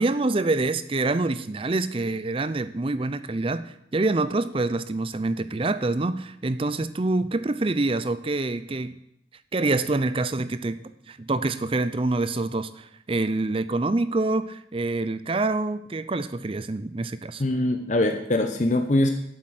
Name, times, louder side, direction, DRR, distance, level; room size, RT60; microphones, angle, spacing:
voice 1, 0.0-9.0 9.5-10.8 11.1-17.4, right 2 dB, 30° right, 13 dB, 0.5 m, -26 dB
voice 2, 17.4-19.1, left 1 dB, 40° left, 6 dB, 0.8 m, -22 dB
8.8 x 7.5 x 7.9 m, 0.75 s
head